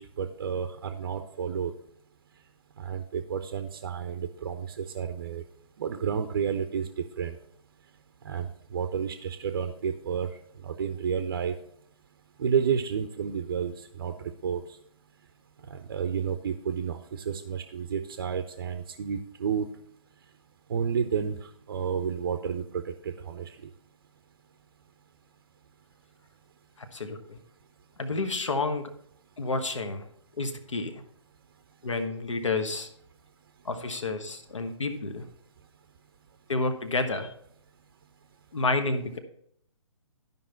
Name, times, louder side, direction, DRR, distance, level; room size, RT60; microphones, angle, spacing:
voice 1, 0.0-1.7 2.8-5.4 5.8-7.3 8.2-10.3 10.6-11.5 12.4-14.6 15.7-19.7 20.7-21.3 21.7-23.5, right 7 dB, 40° right, 7 dB, 0.7 m, -31 dB
voice 2, 26.8-27.4 28.0-28.9 29.4-30.0 30.4-30.9 31.8-32.9 33.6-35.2 36.5-37.3 38.5-39.2, left 3 dB, 65° left, 7 dB, 1.3 m, -30 dB
12.0 x 5.4 x 4.4 m, 0.68 s
figure-of-eight pair, 135°, 17 cm